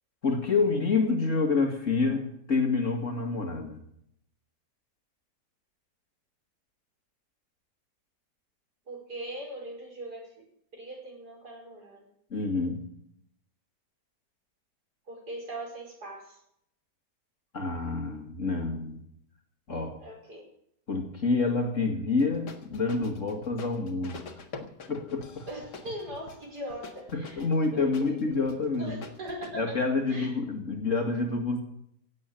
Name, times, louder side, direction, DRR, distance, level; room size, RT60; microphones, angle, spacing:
voice 1, 0.2-3.8 12.3-12.8 17.5-19.0 19.7-20.0 20.9-24.3 24.9-25.5 27.1-28.9 29.5-31.6, left 4 dB, 45° left, 4 dB, 2.4 m, -28 dB
voice 2, 8.9-10.5 10.7-12.1 15.1-16.4 20.0-20.4 25.5-28.5 28.8-29.8 30.1-30.3, right 1 dB, 65° right, 0 dB, 5.8 m, -40 dB
sound 1, 22.2-29.5, left 4 dB, 70° left, 2.2 m, -46 dB
17.0 x 7.8 x 9.0 m, 0.73 s
omnidirectional pair, 1.9 m